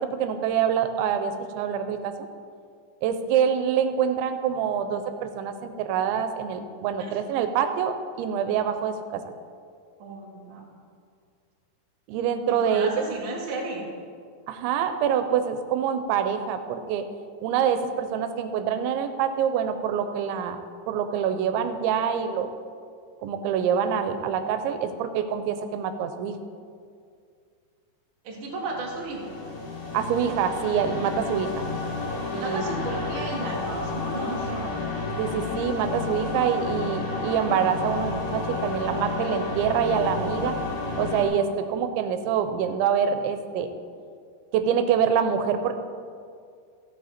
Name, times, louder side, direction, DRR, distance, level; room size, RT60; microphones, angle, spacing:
voice 1, 0.0-2.3 3.0-9.2 12.1-12.9 14.5-17.0 17.4-20.6 20.9-22.5 23.2-26.3 29.9-31.6 32.3-32.6 35.2-40.6 41.0-43.7 44.5-45.8, right 8 dB, 85° right, 9 dB, 3.0 m, -25 dB
voice 2, 10.0-10.7 12.5-13.9 28.2-29.3 32.4-34.6, right 3 dB, 50° right, -2 dB, 1.5 m, -34 dB
sound 1, 28.6-41.2, left 3 dB, 60° left, 3.2 m, -31 dB
14.5 x 8.9 x 4.3 m, 2.2 s
omnidirectional pair, 5.2 m